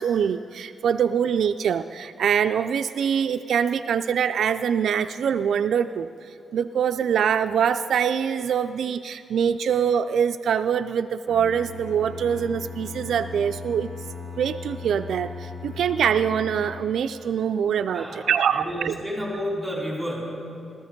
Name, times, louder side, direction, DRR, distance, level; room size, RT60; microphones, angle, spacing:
voice 1, 0.0-6.1 6.5-13.9 14.4-18.9, right 8 dB, 70° right, 8 dB, 0.3 m, -24 dB
Bowed string instrument, 11.3-17.1, left 5 dB, 55° left, 3.1 m, -38 dB
voice 2, 17.9-20.4, equal, ahead, -4 dB, 4.4 m, -31 dB
16.5 x 13.5 x 5.2 m, 2.7 s
wide cardioid pair, 150°, 0 cm